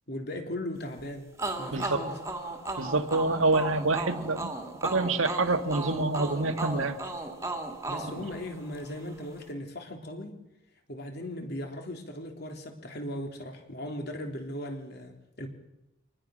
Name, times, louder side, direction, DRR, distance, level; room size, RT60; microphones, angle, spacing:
voice 1, 0.1-1.3 1.6-2.2 7.9-10.4 10.9-15.5, left 1 dB, 50° left, 4 dB, 3.3 m, -38 dB
sound 1, 1.4-9.0, right 2 dB, 15° right, 2.2 m, -36 dB
voice 2, 2.8-4.5 4.8-7.0, right 3 dB, 85° right, 8 dB, 1.7 m, -26 dB
25.0 x 19.5 x 6.4 m, 0.92 s
head